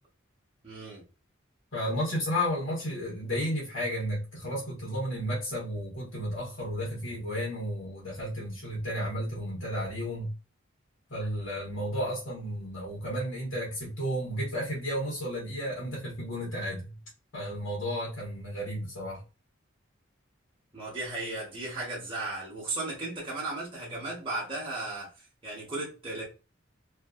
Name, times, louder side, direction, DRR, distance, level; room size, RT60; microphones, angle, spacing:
voice 1, 0.6-1.0 20.7-25.1 25.4-26.2, right 2 dB, 25° right, 1.0 m, -35 dB
voice 2, 1.7-10.3 11.1-16.9 17.3-19.2, equal, 70° left, 1.3 m, -33 dB
2.7 x 2.5 x 2.4 m
head